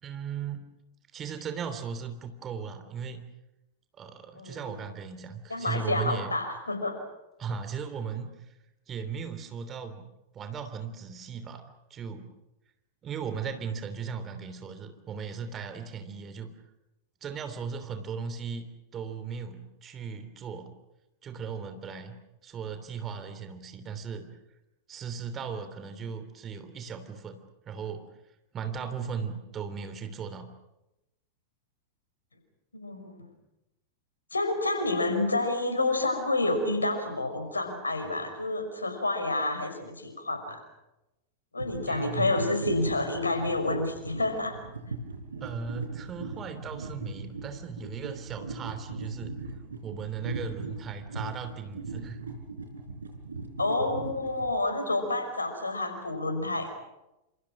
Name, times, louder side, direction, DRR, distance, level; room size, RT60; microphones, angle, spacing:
voice 1, 0.0-0.6 1.1-3.2 4.0-6.3 7.4-8.5 8.9-10.0 10.3-11.6 11.9-12.3 13.0-16.5 17.2-18.6 18.9-20.7 21.2-22.1 22.4-24.3 24.9-27.4 27.6-28.1 28.5-30.5 41.9-42.3 45.4-49.4 49.8-52.2, right 6 dB, 25° right, 9 dB, 3.1 m, -37 dB
voice 2, 4.4-4.7 5.5-7.0 32.7-33.3 34.3-40.6 41.5-44.6 53.6-56.7, left 2 dB, 80° left, 7 dB, 5.6 m, -29 dB
sound 1, 41.6-54.5, right 3 dB, 75° right, 4.3 m, -39 dB
28.5 x 27.5 x 6.2 m, 0.93 s
figure-of-eight pair, 90°, 0 cm